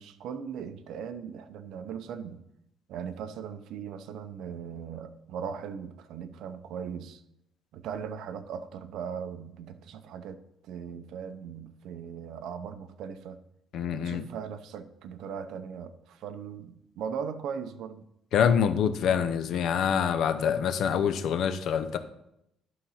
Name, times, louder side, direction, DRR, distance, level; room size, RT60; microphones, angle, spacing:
voice 1, 0.0-2.4 2.9-7.2 7.7-13.4 13.9-18.1, right 7 dB, 70° right, 11 dB, 0.7 m, -39 dB
voice 2, 13.7-14.3 18.3-22.0, left 7 dB, 60° left, 10 dB, 0.7 m, -26 dB
11.5 x 3.9 x 5.7 m, 0.81 s
cardioid pair, 140°, 0 cm